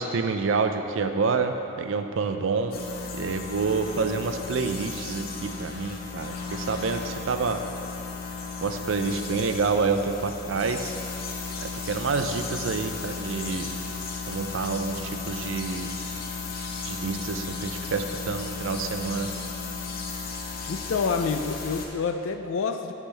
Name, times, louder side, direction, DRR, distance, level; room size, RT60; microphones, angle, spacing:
voice 1, 0.0-2.8 3.2-7.6 8.6-10.9 11.6-13.7 14.3-15.9 16.8-19.3, right 4 dB, 75° right, 7 dB, 0.5 m, -28 dB
sound 1, 2.7-21.9, left 4 dB, 50° left, 0.8 m, -35 dB
voice 2, 20.7-22.9, left 5 dB, 85° left, 8 dB, 0.4 m, -27 dB
13.0 x 5.8 x 3.4 m, 2.8 s
head